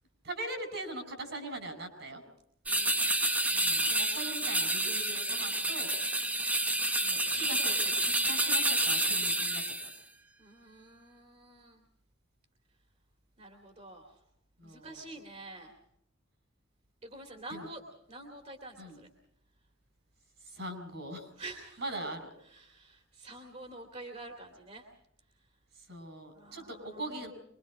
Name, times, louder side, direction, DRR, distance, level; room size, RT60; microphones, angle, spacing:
voice 1, 0.2-2.2 3.5-5.9 7.0-9.9 14.6-14.9 17.5-17.7 18.8-19.0 20.5-21.3 21.8-22.3 25.9-27.3, right 1 dB, 60° right, 8 dB, 5.6 m, -41 dB
sound 1, 2.7-10.0, right 1 dB, 10° right, 0.9 m, -29 dB
voice 2, 2.7-3.1 10.4-11.8 13.4-14.2 14.6-15.8 17.0-17.8 18.1-19.1 21.4-21.8 22.4-24.9 26.3-27.3, right 2 dB, 35° right, 4 dB, 2.7 m, -48 dB
25.5 x 23.0 x 4.9 m, 0.74 s
head